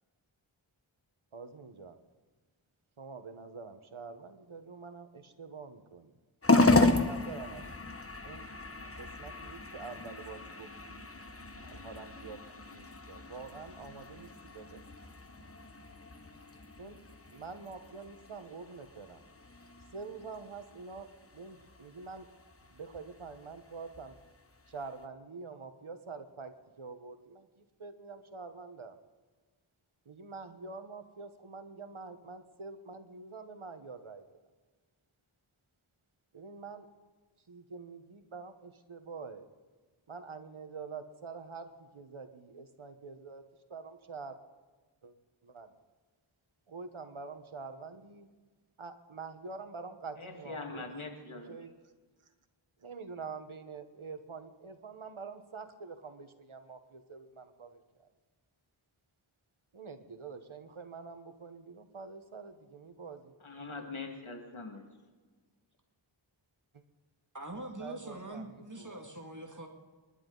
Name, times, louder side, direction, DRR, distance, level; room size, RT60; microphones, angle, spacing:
voice 1, 1.3-1.9 3.0-6.1 7.0-7.7 8.2-8.4 9.0-11.1 11.6-12.4 12.7-14.3 14.5-14.8 16.8-17.0 17.3-19.2 19.9-21.1 21.3-22.3 22.7-24.1 24.7-26.5 26.8-27.4 27.8-28.9 30.1-34.2 36.3-36.9 37.5-39.4 40.1-41.7 41.9-43.4 43.7-44.4 45.0-45.1 45.5-45.7 46.7-48.3 48.8-50.9 51.5-51.7 52.8-57.8 59.7-63.3 63.6-63.7 67.8-68.4 68.8-69.0, right 4 dB, 85° right, 8 dB, 1.3 m, -46 dB
sound 1, 6.4-25.0, left 2 dB, 30° left, 1.2 m, -34 dB
voice 2, 50.2-51.6 63.4-64.9, left 3 dB, 80° left, 3 dB, 2.3 m, -42 dB
voice 3, 67.3-69.7, right 1 dB, 40° right, 2 dB, 2.2 m, -43 dB
28.5 x 11.5 x 4.0 m, 1.4 s
wide cardioid pair, 40°, 47 cm